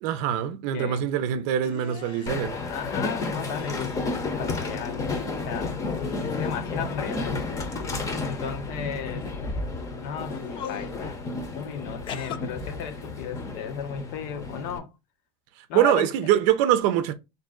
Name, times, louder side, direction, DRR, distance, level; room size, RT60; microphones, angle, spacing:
voice 1, 0.0-2.6 15.7-17.1, right 11 dB, 70° right, 0.5 m, -23 dB
sound 1, 1.6-2.4 3.3-4.1 4.4-5.5 5.9-6.6 7.4-8.4 9.2-9.5 10.3-10.9 12.1-12.4, left 8 dB, 40° left, 0.4 m, -41 dB
Train, 2.3-14.8, left 3 dB, 25° left, 0.7 m, -32 dB
voice 2, 2.7-5.0 5.4-5.8 6.3-7.4 8.3-9.3 10.0-11.2 11.5-14.9 15.7-16.1, left 7 dB, 70° left, 0.8 m, -34 dB
3.7 x 2.7 x 3.7 m
cardioid pair, 145°, 14 cm